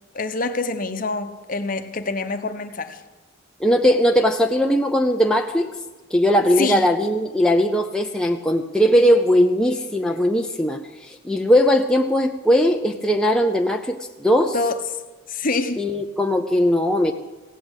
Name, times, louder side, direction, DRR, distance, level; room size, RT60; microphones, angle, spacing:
voice 1, 0.1-3.0 6.6-6.8 14.5-14.8 15.3-15.8, left 3 dB, 40° left, 0.9 m, -26 dB
voice 2, 3.6-5.7 6.1-14.6 15.8-17.1, equal, 5° left, 0.5 m, -19 dB
16.5 x 8.4 x 8.0 m
head